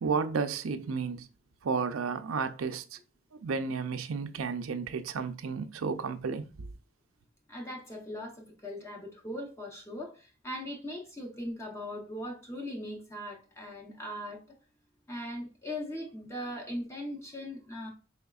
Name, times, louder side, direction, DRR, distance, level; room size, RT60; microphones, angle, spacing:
voice 1, 0.0-1.3 1.6-2.8 3.4-6.7, right 5 dB, 85° right, 0.5 m, -32 dB
voice 2, 7.5-14.6 15.1-17.9, left 1 dB, 15° left, 0.8 m, -39 dB
4.9 x 3.4 x 2.3 m
head